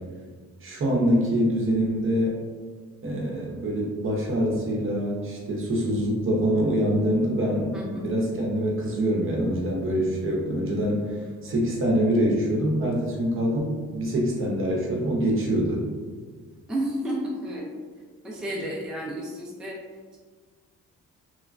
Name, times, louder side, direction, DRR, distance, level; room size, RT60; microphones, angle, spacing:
voice 1, 0.6-2.3 3.0-7.7 8.0-11.1 11.4-15.8, equal, 45° right, -2 dB, 0.7 m, -25 dB
voice 2, 7.7-8.1 16.7-17.7 18.2-19.8, right 1 dB, 5° right, -4 dB, 0.4 m, -31 dB
3.0 x 2.1 x 2.5 m, 1.5 s
cardioid pair, 90°, 30 cm